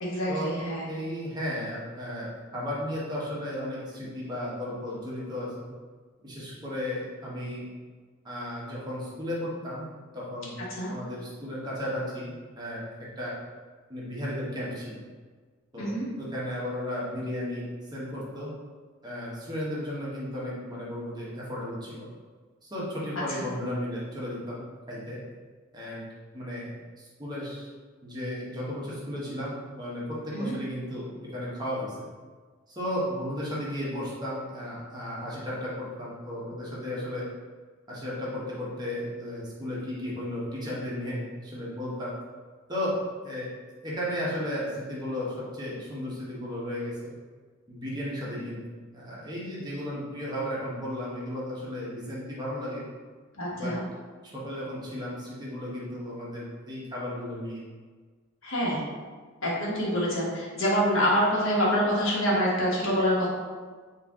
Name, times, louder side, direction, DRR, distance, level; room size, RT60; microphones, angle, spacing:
voice 1, 0.0-0.8 10.7-10.9 15.8-16.0 30.3-30.5 53.4-53.8 58.4-58.8 59.4-63.3, equal, 70° left, -5 dB, 1.1 m, -26 dB
voice 2, 0.9-5.7 6.2-7.6 8.2-9.8 10.1-10.6 10.9-13.3 13.9-14.9 15.7-17.6 17.9-18.5 19.0-22.1 22.6-25.2 25.7-26.0 26.3-26.7 27.0-27.7 28.0-32.1 32.7-37.3 37.9-42.1 42.7-43.0 43.2-43.5 43.8-47.1 47.7-48.6 48.9-52.8 53.5-53.7 54.2-57.6, left 1 dB, 20° right, -6 dB, 0.9 m, -34 dB
4.3 x 2.5 x 3.5 m, 1.5 s
head